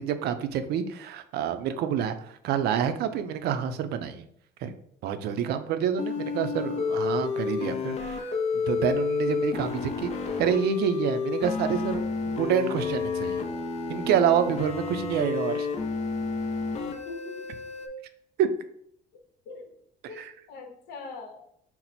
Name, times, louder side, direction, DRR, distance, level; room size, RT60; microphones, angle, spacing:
voice 1, 0.0-4.2 4.6-4.7 5.0-10.1 10.4-13.4 13.9-15.7 18.4-18.5 20.2-20.3, right 8 dB, 75° right, 10 dB, 0.4 m, -27 dB
sound 1, 6.0-17.9, left 5 dB, 40° left, 0.5 m, -30 dB
voice 2, 16.9-17.5 19.5-19.7 20.1-21.5, left 3 dB, 80° left, 5 dB, 0.8 m, -42 dB
4.3 x 2.0 x 4.0 m, 0.68 s
cardioid pair, 110°, 17 cm